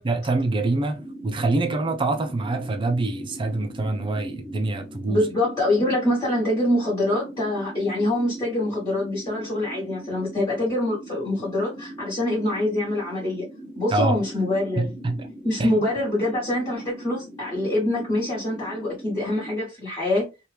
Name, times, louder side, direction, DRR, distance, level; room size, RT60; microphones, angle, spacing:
voice 1, 0.0-5.3 13.9-14.2 14.8-15.3 15.6-15.8, right 2 dB, 25° right, 0.4 m, -25 dB
sound 1, 0.9-19.6, right 1 dB, 45° right, 0.8 m, -41 dB
voice 2, 5.1-13.4 13.7-14.9 15.4-20.3, left 1 dB, 20° left, 1.3 m, -25 dB
2.8 x 2.3 x 3.3 m
head